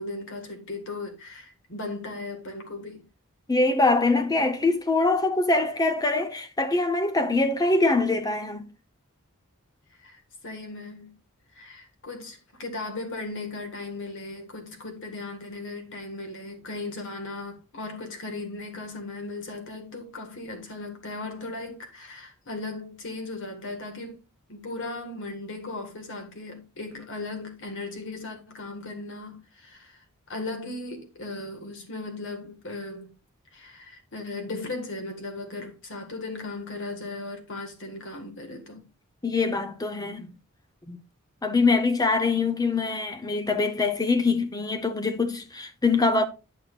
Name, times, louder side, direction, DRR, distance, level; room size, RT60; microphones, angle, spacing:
voice 1, 0.0-3.1 10.0-11.2 11.5-24.2 24.5-33.1 33.5-38.9, left 2 dB, 60° left, 1.8 m, -37 dB
voice 2, 3.5-8.7 39.2-40.3 40.9-41.0 41.4-46.3, left 3 dB, 15° left, 0.7 m, -24 dB
9.5 x 6.2 x 2.5 m
head